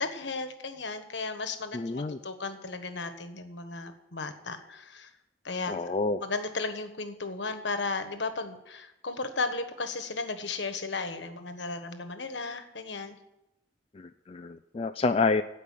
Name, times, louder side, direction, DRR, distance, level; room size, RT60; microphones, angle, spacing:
voice 1, 0.0-5.1 5.4-5.7 6.2-13.2, left 3 dB, 75° left, 8 dB, 1.3 m, -35 dB
voice 2, 1.7-2.2 5.7-6.2 13.9-15.4, left 3 dB, 30° left, 7 dB, 0.4 m, -28 dB
16.0 x 5.4 x 8.3 m, 0.87 s
head